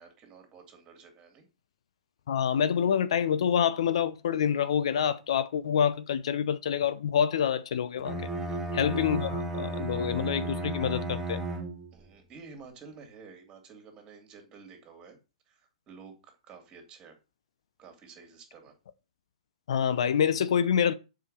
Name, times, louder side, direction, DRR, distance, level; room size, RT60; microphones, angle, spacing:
voice 1, 0.0-1.5 8.4-8.8 11.9-15.2 15.5-17.1 17.8-18.7, right 5 dB, 25° right, 2.8 m, -51 dB
voice 2, 2.3-8.2 8.7-11.4 19.7-20.9, left 8 dB, 55° left, 0.7 m, -27 dB
Bowed string instrument, 8.0-12.1, right 1 dB, 10° right, 1.6 m, -34 dB
7.3 x 4.9 x 6.5 m
figure-of-eight pair, 115°, 4 cm